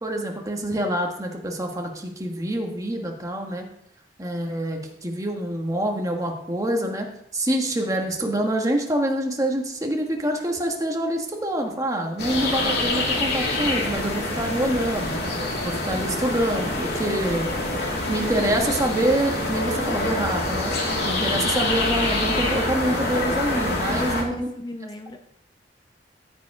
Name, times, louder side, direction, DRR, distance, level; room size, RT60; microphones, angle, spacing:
voice 1, 0.0-3.7 4.2-7.1 7.3-15.2 15.6-17.5 18.1-20.7 21.0-24.5, right 1 dB, 20° right, 2 dB, 1.5 m, -26 dB
sound 1, 12.2-24.2, left 2 dB, 65° left, 2.3 m, -26 dB
voice 2, 23.7-24.0 24.3-25.2, left 1 dB, 25° left, 5 dB, 0.8 m, -37 dB
15.0 x 5.0 x 4.8 m, 0.73 s
head